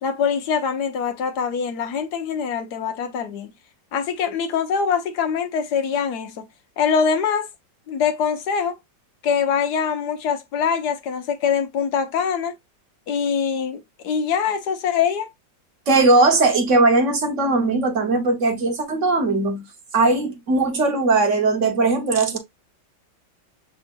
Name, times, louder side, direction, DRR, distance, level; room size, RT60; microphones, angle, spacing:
voice 1, 0.0-3.5 3.9-6.4 6.8-7.5 7.9-8.8 9.2-12.5 13.1-15.3, left 6 dB, 65° left, 1.3 m, -23 dB
voice 2, 15.9-19.6 19.9-22.4, right 3 dB, 45° right, 1.3 m, -19 dB
5.8 x 3.6 x 2.5 m
omnidirectional pair, 2.0 m